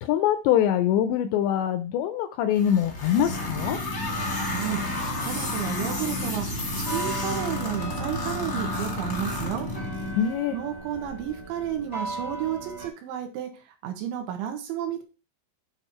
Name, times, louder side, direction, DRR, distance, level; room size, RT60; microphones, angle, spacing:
voice 1, 0.0-3.8 10.2-10.6, left 10 dB, 80° left, 9 dB, 2.6 m, -23 dB
sound 1, 2.5-10.1, left 2 dB, 55° left, 0.9 m, -33 dB
sound 2, 3.2-10.2, equal, 60° right, 2.0 m, -33 dB
voice 2, 4.4-4.8 5.2-9.7 10.5-13.5 13.8-15.0, right 10 dB, 80° right, 4 dB, 3.4 m, -32 dB
sound 3, 6.8-12.9, right 2 dB, 25° left, 0.8 m, -38 dB
9.1 x 4.1 x 4.3 m, 0.31 s
omnidirectional pair, 5.4 m